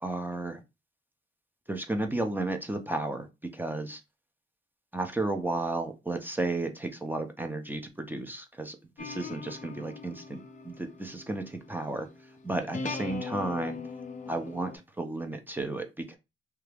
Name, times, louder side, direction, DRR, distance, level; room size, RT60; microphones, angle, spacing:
voice 1, 0.0-0.6 1.7-3.3 3.5-4.0 4.9-10.4 10.6-12.1 12.4-13.8 14.3-14.7 15.0-16.2, right 2 dB, 10° right, 5 dB, 0.5 m, -33 dB
sound 1, 9.0-14.8, left 4 dB, 40° left, 0.6 m, -41 dB
2.7 x 2.3 x 3.3 m, 0.25 s
cardioid pair, 90°, 20 cm